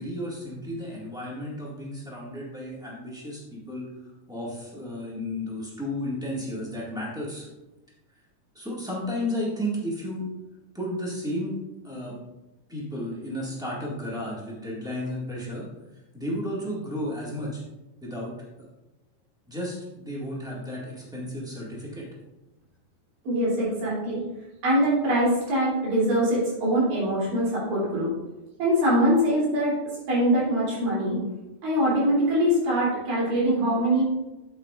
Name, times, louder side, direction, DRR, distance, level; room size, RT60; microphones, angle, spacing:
voice 1, 0.0-3.9 4.3-7.5 8.5-10.3 10.7-11.5 11.8-12.2 12.7-15.7 16.1-17.6 18.0-18.3 18.6-18.7 19.5-22.1, left 1 dB, 5° right, -5 dB, 0.4 m, -33 dB
voice 2, 23.2-24.2 24.6-28.1 28.6-29.8 30.1-31.2 31.6-34.0, equal, 75° right, -6 dB, 4.7 m, -23 dB
8.8 x 8.3 x 2.4 m, 1.0 s
omnidirectional pair, 3.9 m